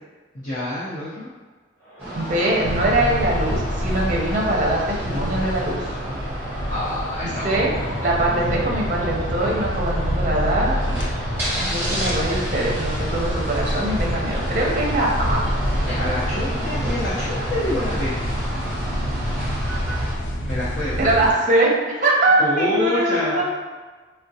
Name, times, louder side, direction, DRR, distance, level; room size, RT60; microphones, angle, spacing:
voice 1, 0.3-1.3 6.7-7.6 8.3-8.4 15.7-18.1 20.4-21.0 22.4-23.4, left 1 dB, 45° left, -12 dB, 0.8 m, -27 dB
Crowd, 1.8-18.1, equal, 15° left, 1.0 m, -37 dB
sound 1, 2.0-20.1, right 1 dB, 10° right, 0.9 m, -33 dB
voice 2, 2.1-5.9 7.4-7.7 8.0-10.8 11.6-15.4 21.0-23.4, right 1 dB, 45° right, -2 dB, 0.6 m, -22 dB
sound 2, 2.6-21.3, equal, 80° left, 0.5 m, -27 dB
3.6 x 2.1 x 2.7 m, 1.4 s
head